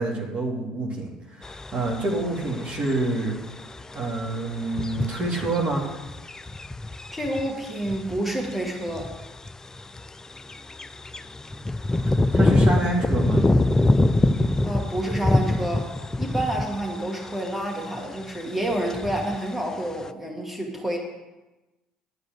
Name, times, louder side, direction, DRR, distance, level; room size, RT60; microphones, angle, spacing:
voice 1, 0.0-3.4 3.9-5.8 12.3-13.4, right 2 dB, 45° right, -2 dB, 2.5 m, -27 dB
sound 1, 1.4-17.5 17.8-18.0 18.2-19.5 20.0-20.1, left 2 dB, 20° left, 0.5 m, -25 dB
voice 2, 7.1-9.1 14.6-15.9 16.2-21.0, right 1 dB, 5° right, 0 dB, 2.3 m, -29 dB
11.0 x 5.0 x 7.9 m, 1.1 s
hypercardioid pair, 60°, 3 cm